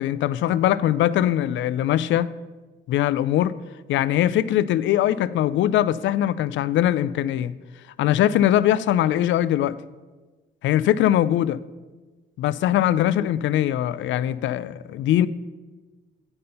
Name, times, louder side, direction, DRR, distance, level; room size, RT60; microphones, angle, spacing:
voice 1, 0.0-2.3 2.9-3.5 3.9-7.5 8.0-9.8 10.6-11.6 12.4-15.3, left 12 dB, 75° left, 17 dB, 0.4 m, -21 dB
8.6 x 5.4 x 5.5 m, 1.3 s
cardioid pair, 90°, 20 cm